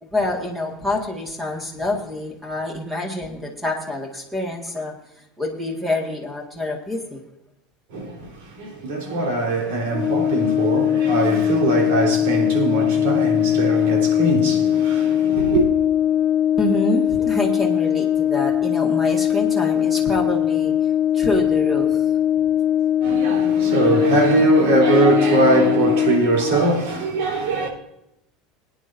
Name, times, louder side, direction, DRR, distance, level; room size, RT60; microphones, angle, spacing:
voice 1, 0.0-7.2 16.6-20.7 21.1-22.1, left 1 dB, 5° right, 1.8 m, -26 dB
voice 2, 7.9-15.7 23.0-27.7, right 2 dB, 80° right, 3.7 m, -21 dB
Brass instrument, 9.9-26.3, left 10 dB, 20° left, 1.7 m, -20 dB
20.5 x 9.8 x 2.6 m
cardioid pair, 175°, 0 cm